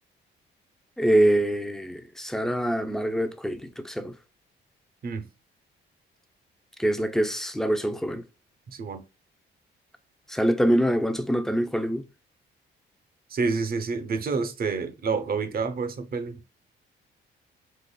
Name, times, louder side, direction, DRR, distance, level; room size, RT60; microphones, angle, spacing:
voice 1, 1.0-4.1 6.8-8.2 10.3-12.0, right 1 dB, ahead, 0.6 m, -24 dB
voice 2, 8.7-9.0 13.3-16.4, right 4 dB, 50° right, 0.8 m, -28 dB
4.1 x 3.0 x 2.2 m
cardioid pair, 90°, 20 cm